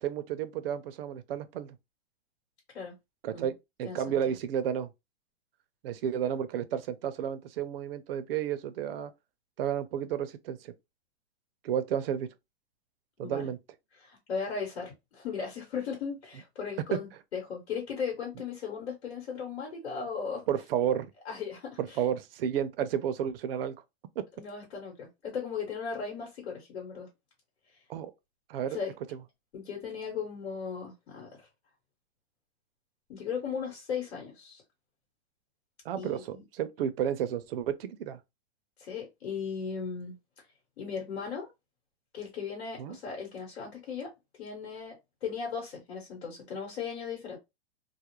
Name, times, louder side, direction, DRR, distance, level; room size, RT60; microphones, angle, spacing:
voice 1, 0.0-1.8 3.2-3.5 3.8-4.9 5.8-9.1 9.6-10.7 11.6-12.3 13.2-13.6 16.9-17.0 20.5-21.1 21.8-23.8 24.2-24.3 27.9-28.1 28.5-28.8 35.9-38.2 42.8-43.0, right 9 dB, 60° right, 0.5 m, -31 dB
voice 2, 3.8-4.3 13.2-13.5 13.9-20.4 21.2-22.0 24.4-27.1 28.7-28.9 29.5-31.5 33.1-34.6 36.0-36.4 38.8-40.5 40.8-41.5 42.1-44.1 44.4-44.9 45.2-47.4, left 6 dB, 85° left, 1.2 m, -37 dB
2.3 x 2.0 x 2.9 m
supercardioid pair, 160°, 32 cm